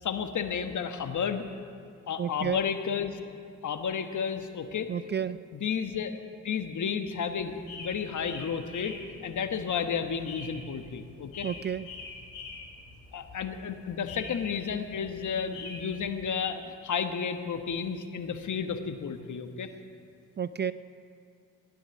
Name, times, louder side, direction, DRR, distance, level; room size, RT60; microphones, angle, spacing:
voice 1, 0.0-1.4 2.1-3.2 3.6-4.9 5.5-9.0 9.2-11.5 13.1-19.7, left 6 dB, 55° left, 7 dB, 1.3 m, -32 dB
voice 2, 2.2-2.6 4.9-5.4 11.4-11.9 20.4-20.7, right 8 dB, 30° right, 15 dB, 0.4 m, -31 dB
sound 1, 7.3-16.2, left 3 dB, 90° left, 2.1 m, -46 dB
16.0 x 10.5 x 7.1 m, 2.3 s
hypercardioid pair, 45°, 36 cm